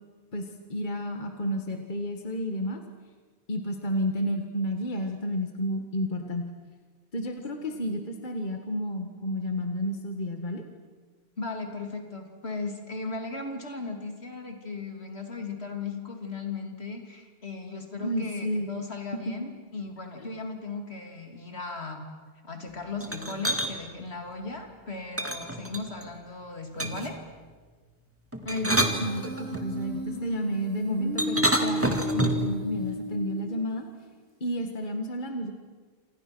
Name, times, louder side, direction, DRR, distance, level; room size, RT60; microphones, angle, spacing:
voice 1, 0.3-2.8 3.5-6.5 7.1-10.6 18.0-18.7 28.5-33.9 34.4-35.5, equal, 50° left, 4 dB, 1.9 m, -31 dB
voice 2, 11.4-22.0 22.4-27.2, left 3 dB, 75° left, 3 dB, 3.3 m, -37 dB
sound 1, 23.0-23.7 25.2-26.1 26.8-27.2 28.3-29.7 31.2-32.5, right 1 dB, 10° right, 2.0 m, -28 dB
Human voice, 28.8-33.8, left 1 dB, 75° right, 5.7 m, -34 dB
28.0 x 27.5 x 6.2 m, 1.5 s
omnidirectional pair, 1.1 m